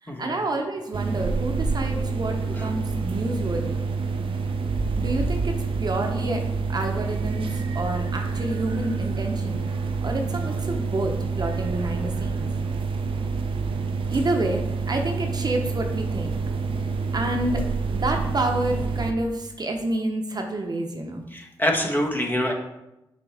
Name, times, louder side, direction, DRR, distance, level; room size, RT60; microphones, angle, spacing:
voice 1, 0.0-3.8 5.0-6.4 6.7-9.6 10.0-12.5 14.1-16.3 17.1-17.6 17.9-21.3, right 2 dB, 50° right, 3 dB, 0.9 m, -28 dB
sound 1, 0.9-19.1, right 4 dB, 75° right, 0.6 m, -27 dB
voice 2, 21.3-22.5, left 1 dB, 20° left, 1 dB, 1.2 m, -25 dB
6.3 x 4.4 x 3.5 m, 0.92 s
cardioid pair, 50°, 9 cm